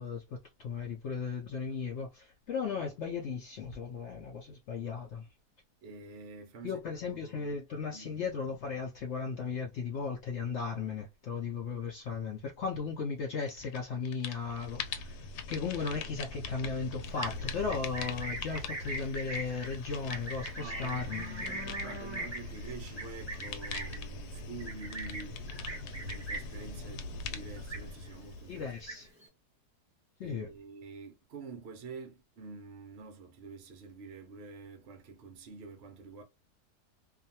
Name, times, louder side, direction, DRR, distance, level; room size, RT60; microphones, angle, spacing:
voice 1, 0.0-5.3 6.6-21.7 28.5-29.1 30.2-30.5, left 5 dB, 75° left, 0.6 m, -36 dB
voice 2, 5.8-6.8 7.0-7.6 7.9-8.2 20.6-21.1 21.4-25.5 25.9-28.6 30.2-36.2, right 4 dB, 65° right, 0.6 m, -47 dB
sound 1, 13.4-13.8 14.1-29.1, left 3 dB, 90° left, 1.2 m, -42 dB
Livestock farm animals working animals, 17.0-26.7 27.0-27.3 27.6-28.2 28.6-29.3, right 2 dB, 25° right, 0.7 m, -41 dB
2.5 x 2.3 x 2.7 m
omnidirectional pair, 1.7 m